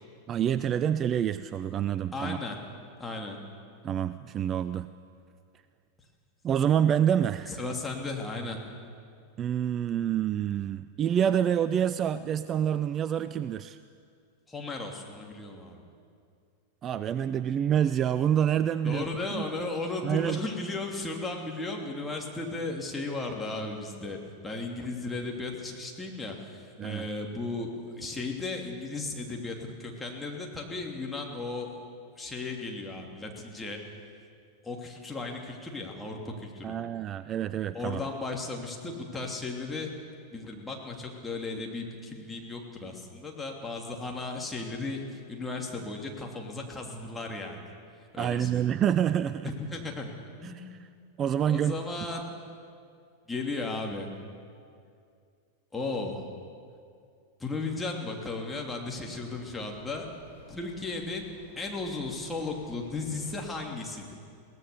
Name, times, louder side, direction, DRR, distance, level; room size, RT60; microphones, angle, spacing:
voice 1, 0.3-2.4 3.8-4.9 6.4-7.6 9.4-13.8 16.8-19.1 19.3-19.4 20.0-20.4 26.8-27.0 36.6-38.0 48.2-49.5 50.4-50.6 51.2-51.7, right 9 dB, 30° right, 14 dB, 0.4 m, -27 dB
voice 2, 2.1-2.6 3.0-3.4 7.5-8.6 14.5-15.8 18.8-31.7 32.2-33.8 34.6-36.8 37.7-39.9 40.3-47.7 48.1-48.6 49.4-50.1 50.4-50.6 51.4-52.2 53.3-54.1 55.7-56.3 57.4-60.1 60.5-61.3 61.6-64.1, left 3 dB, 10° left, 0 dB, 3.1 m, -35 dB
sound 1, 58.4-63.5, left 2 dB, 70° left, 4.4 m, -54 dB
22.0 x 17.5 x 7.0 m, 2.4 s
figure-of-eight pair, 90°, 0 cm